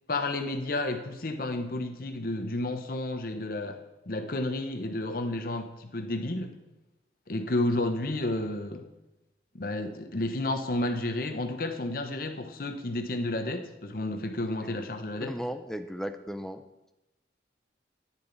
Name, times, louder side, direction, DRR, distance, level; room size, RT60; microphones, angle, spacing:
voice 1, 0.1-3.8 4.1-6.5 7.3-8.9 9.5-15.4, left 2 dB, 50° left, 7 dB, 0.9 m, -31 dB
voice 2, 15.2-16.6, equal, 5° left, 8 dB, 0.5 m, -36 dB
10.0 x 10.0 x 4.0 m, 0.96 s
head